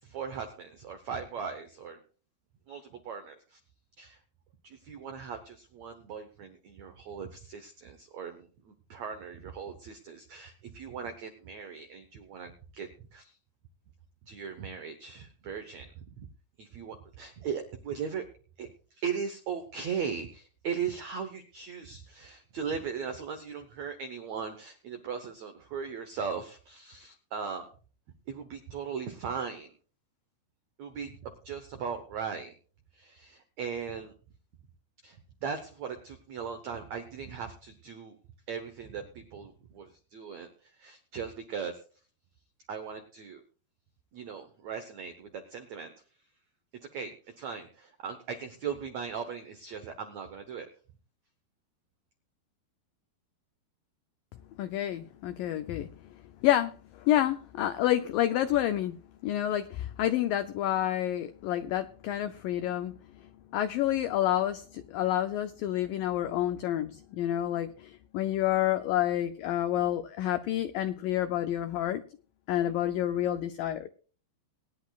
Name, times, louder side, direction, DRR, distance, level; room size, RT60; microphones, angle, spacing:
voice 1, 0.0-2.0 2.7-3.6 4.0-4.2 4.6-13.4 14.2-16.3 16.6-18.3 18.6-27.7 28.3-29.7 30.8-32.5 32.9-34.1 35.0-38.2 38.5-41.8 42.7-43.4 44.1-45.9 46.9-50.7, right 6 dB, 85° right, 7 dB, 1.5 m, -38 dB
voice 2, 54.6-55.9 56.4-59.0 59.2-62.9 63.5-72.0 72.5-73.9, left 12 dB, 90° left, 9 dB, 1.9 m, -29 dB
22.5 x 10.5 x 2.4 m, 0.39 s
omnidirectional pair, 4.8 m